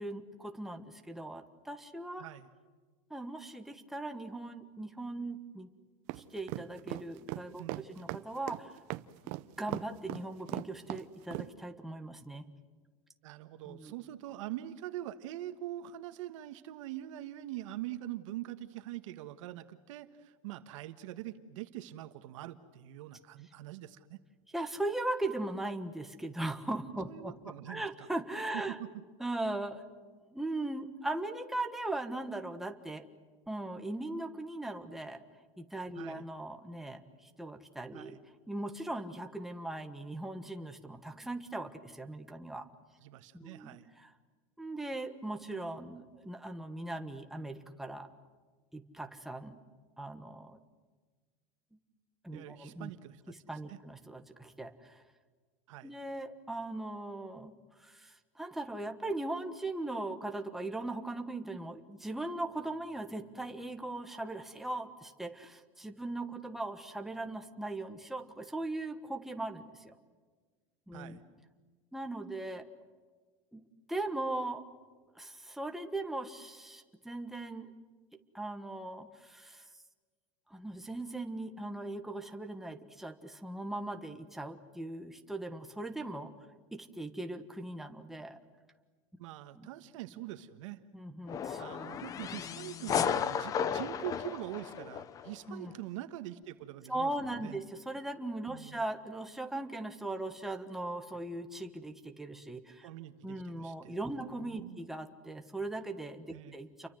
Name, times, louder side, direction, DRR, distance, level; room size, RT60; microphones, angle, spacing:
voice 1, 0.0-2.2 3.1-5.7 6.1-8.8 9.6-12.4 13.6-13.9 24.5-28.8 29.2-30.0 30.3-33.1 33.5-35.2 35.6-38.2 38.5-42.7 43.3-44.1 44.6-48.1 48.7-49.6 50.0-50.6 52.2-52.9 53.3-55.0 55.8-57.5 57.8-69.9 70.9-71.2 71.9-72.6 73.5-74.6 75.1-77.7 78.3-79.7 80.5-86.4 86.7-88.4 89.5-89.7 90.9-91.6 95.5-95.7 96.9-102.9 103.2-106.9, right 2 dB, ahead, 5 dB, 1.4 m, -39 dB
sound 1, 6.1-11.5, right 19 dB, 45° right, 0.8 m, -38 dB
voice 2, 13.2-24.2 27.0-28.1 28.5-28.9 35.9-36.3 37.9-38.2 43.0-43.9 52.3-53.3 53.7-53.8 55.7-55.9 70.9-71.2 89.2-90.8 91.6-97.1 97.4-97.6 98.5-98.8 102.8-104.0 104.2-104.8 106.3-106.6, right 13 dB, 70° right, 9 dB, 1.5 m, -44 dB
sound 2, 91.3-95.3, left 8 dB, 20° left, 0.7 m, -34 dB
30.0 x 24.0 x 7.8 m, 1.4 s
supercardioid pair, 175°, 17 cm